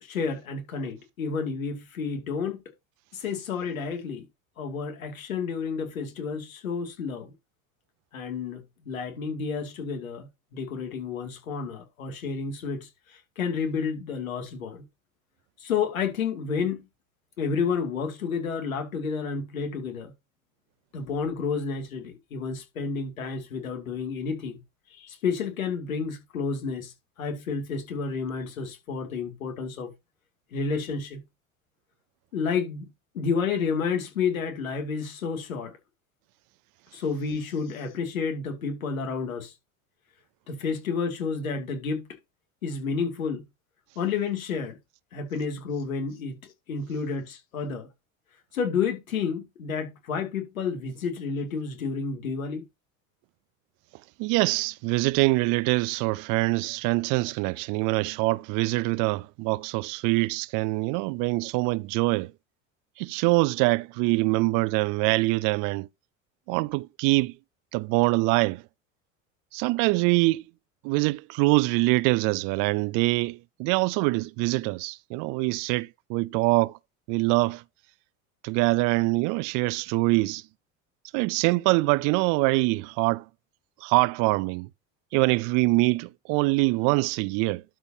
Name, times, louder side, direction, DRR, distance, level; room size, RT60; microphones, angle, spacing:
voice 1, 0.0-2.6 3.1-4.3 4.6-7.3 8.1-14.8 15.6-16.8 17.4-20.1 20.9-24.6 24.9-29.9 30.5-31.2 32.3-32.9 33.1-35.7 36.9-39.5 40.5-42.1 42.6-43.4 44.0-44.8 45.1-47.9 48.5-52.6, left 5 dB, 90° left, 2.4 m, -30 dB
voice 2, 54.2-62.3 63.0-65.9 66.5-67.3 67.7-68.6 69.5-70.4 70.8-76.7 77.1-77.6 78.4-80.4 81.1-83.2 83.8-84.7 85.1-87.6, right 24 dB, 55° right, 0.4 m, -24 dB
12.0 x 5.1 x 2.7 m
hypercardioid pair, 80°, 40 cm